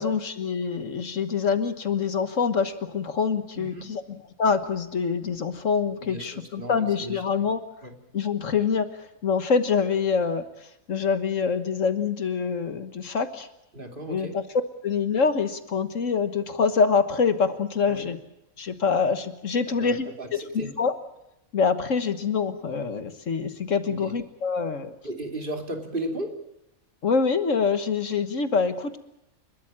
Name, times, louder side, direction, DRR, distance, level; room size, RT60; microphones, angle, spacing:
voice 1, 0.0-4.0 4.4-7.6 8.1-8.9 9.2-10.4 10.9-13.5 14.1-14.4 14.8-18.2 18.6-20.9 21.5-24.9 27.0-29.0, left 5 dB, 65° left, 10 dB, 1.7 m, -25 dB
voice 2, 3.5-3.9 6.0-7.5 7.8-8.0 13.7-14.4 17.9-18.1 19.7-20.7 23.9-24.1 25.0-26.3, right 1 dB, 40° right, 3 dB, 3.0 m, -36 dB
29.5 x 13.5 x 8.7 m, 0.88 s
omnidirectional pair, 1.4 m